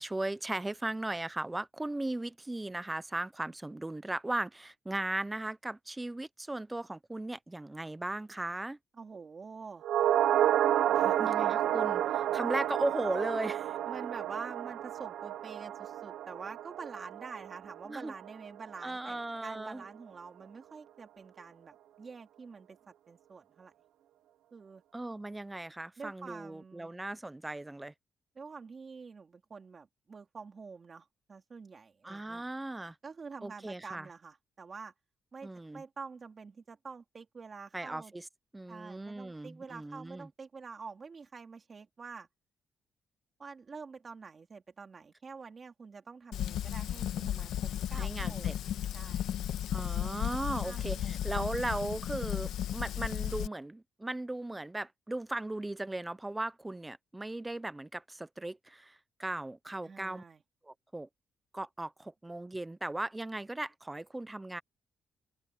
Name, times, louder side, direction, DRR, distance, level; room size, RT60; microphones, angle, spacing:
voice 1, 0.0-8.8 11.2-13.8 17.8-18.1 18.8-19.8 24.9-27.9 32.0-33.0 33.4-34.1 35.4-35.8 37.7-38.3 38.5-40.3 47.9-48.6 49.7-60.2 60.6-61.1 61.5-64.6, right 2 dB, 10° right, 0.5 m, -37 dB
voice 2, 9.0-9.9 10.9-11.3 13.9-23.7 24.5-24.8 26.0-26.9 28.3-32.4 33.0-34.9 35.3-38.1 38.7-42.3 43.4-48.6 48.9-49.3 50.6-51.2 59.8-60.4, right 5 dB, 30° right, 3.2 m, -47 dB
sound 1, 9.8-18.3 18.6-18.7, right 11 dB, 85° right, 0.7 m, -30 dB
Fire, 46.3-53.5, left 11 dB, 90° left, 1.4 m, -34 dB
cardioid pair, 155°, 0 cm